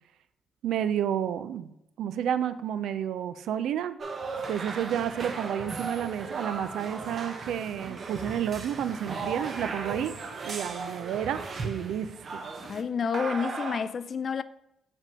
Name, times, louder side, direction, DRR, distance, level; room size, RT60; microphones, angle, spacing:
voice 1, 0.6-1.7 2.0-4.0 4.5-10.1 10.4-12.5, right 9 dB, 80° right, 0.4 m, -31 dB
sound 1, 4.0-12.8 13.1-13.8, right 4 dB, 45° right, 0.7 m, -36 dB
voice 2, 12.6-14.4, left 6 dB, 45° left, 0.3 m, -29 dB
5.2 x 3.5 x 5.2 m
cardioid pair, 90°, 0 cm